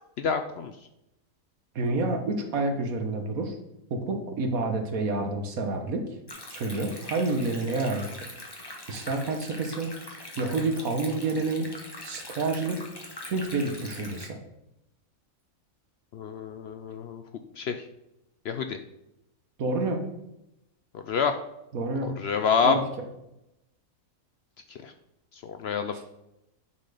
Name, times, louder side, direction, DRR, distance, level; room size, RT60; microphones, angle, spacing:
voice 1, 0.2-0.7 16.1-17.2 17.6-17.9 18.4-18.8 20.9-21.3 22.0-22.8 24.7-24.9 25.3-26.0, left 6 dB, 65° left, 8 dB, 0.7 m, -28 dB
voice 2, 1.7-3.6 3.9-6.0 6.5-8.3 8.9-9.9 10.4-11.7 12.0-12.9 13.2-14.4 19.6-20.0 21.7-22.2 22.6-22.8, right 3 dB, 80° right, 4 dB, 1.5 m, -28 dB
Stream, 6.3-14.3, left 1 dB, 20° left, 1.2 m, -42 dB
9.5 x 4.2 x 4.9 m, 0.86 s
omnidirectional pair, 1.5 m